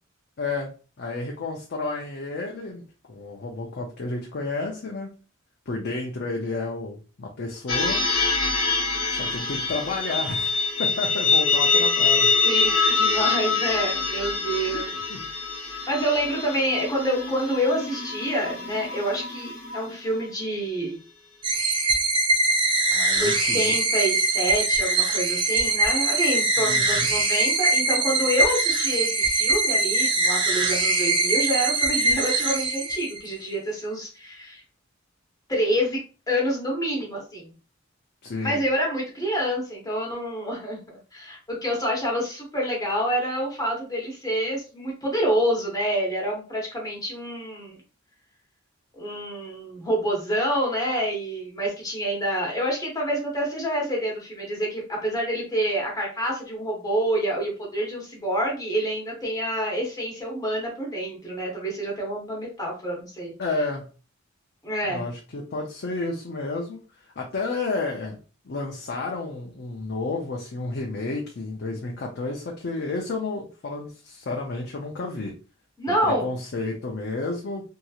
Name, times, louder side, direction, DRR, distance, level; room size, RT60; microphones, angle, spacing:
voice 1, 0.4-0.7 1.0-2.8 3.1-5.1 5.7-8.0 9.1-12.3 14.7-14.8 15.1-15.3 22.9-23.7 26.6-27.1 38.2-38.6 63.4-63.8 64.9-66.8 67.2-68.2 68.4-75.3 75.9-77.6, left 3 dB, 55° left, 0 dB, 0.5 m, -31 dB
sound 1, 7.7-20.2, left 4 dB, 85° left, 0.9 m, -25 dB
voice 2, 12.4-14.9 15.5-21.0 23.2-34.6 35.5-36.0 36.3-37.5 38.4-47.8 48.9-63.3 64.6-65.1 75.8-76.3, equal, 20° left, -2 dB, 1.0 m, -27 dB
sound 2, 21.4-33.3, right 2 dB, 25° right, 0.5 m, -22 dB
3.0 x 2.7 x 2.3 m, 0.35 s
head